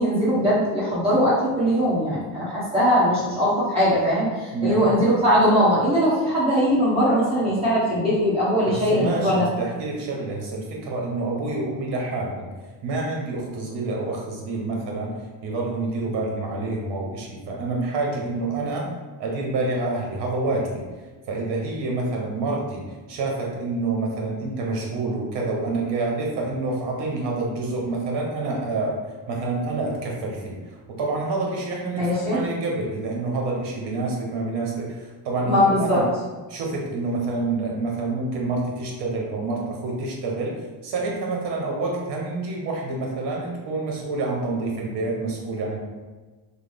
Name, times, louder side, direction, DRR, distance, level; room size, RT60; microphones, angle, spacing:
voice 1, 0.0-9.5 32.0-32.4 35.4-36.0, equal, 15° right, -10 dB, 1.3 m, -20 dB
voice 2, 4.5-5.0 8.7-12.5 12.8-15.1 15.4-18.9 19.2-20.8 21.3-22.8 23.1-29.0 29.3-30.6 30.9-36.1 36.5-40.6 40.8-45.8, right 3 dB, 65° right, -1 dB, 1.0 m, -27 dB
3.1 x 2.2 x 3.4 m, 1.3 s
cardioid pair, 140°, 45 cm